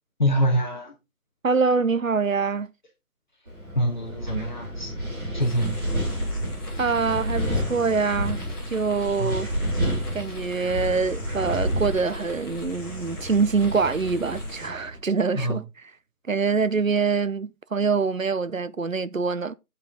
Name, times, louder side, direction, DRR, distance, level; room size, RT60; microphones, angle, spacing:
voice 1, 0.2-0.9 3.8-4.9 5.3-5.8 9.2-9.4 15.3-15.6, equal, 30° left, 2.4 m, -25 dB
voice 2, 1.4-2.7 6.8-8.4 8.7-9.5 10.1-15.6 16.3-19.5, right 5 dB, 60° right, 0.8 m, -24 dB
Wind, 3.5-15.0, equal, 15° right, 3.6 m, -31 dB
sound 1, 5.4-14.7, left 1 dB, 15° left, 3.4 m, -39 dB
8.5 x 8.4 x 3.9 m
figure-of-eight pair, 165°, 45 cm